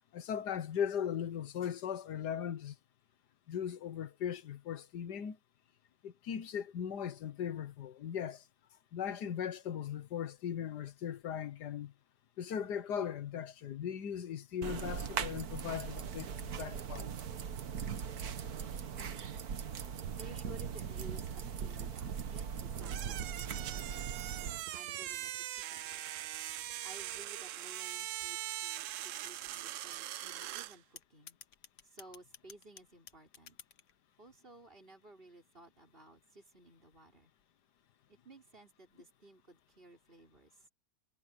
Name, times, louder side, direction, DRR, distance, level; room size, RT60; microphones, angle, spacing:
voice 1, 0.1-2.7 3.5-5.4 6.0-8.4 8.9-11.9 12.4-17.1, left 8 dB, 70° left, 1.6 m, -38 dB
sound 1, 14.6-24.6, right 7 dB, 60° right, 1.7 m, -40 dB
voice 2, 20.2-24.1 24.7-26.0 26.8-31.4 31.8-33.6 34.2-37.3 38.1-40.7, right 2 dB, 30° right, 5.4 m, -56 dB
sound 2, 22.8-30.8, right 13 dB, 85° right, 0.6 m, -41 dB
sound 3, 23.3-25.8 26.5-29.6 29.9-30.5 31.0-33.9, left 7 dB, 50° left, 1.2 m, -56 dB
omnidirectional pair, 1.9 m